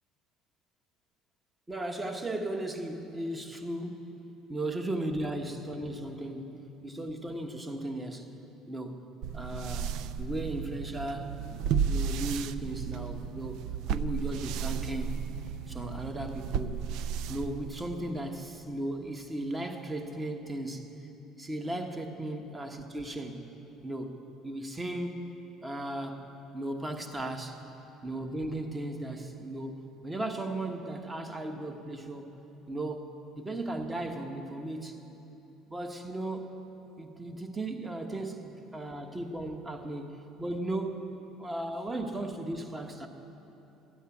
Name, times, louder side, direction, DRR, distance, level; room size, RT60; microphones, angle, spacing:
voice 1, 1.7-4.1 4.5-6.6 6.8-8.3 8.7-9.1 9.3-9.9 10.2-11.4 11.9-13.6 13.9-15.2 15.7-16.8 17.3-20.8 21.4-23.4 23.8-25.3 25.6-26.2 26.5-27.6 28.0-32.4 32.7-35.0 35.7-36.5 37.0-41.0 41.4-43.1, right 1 dB, 20° right, 5 dB, 1.2 m, -36 dB
sound 1, 9.2-18.1, right 7 dB, 70° right, 0.4 m, -34 dB
13.0 x 9.4 x 7.1 m, 2.9 s
supercardioid pair, 85°, 0 cm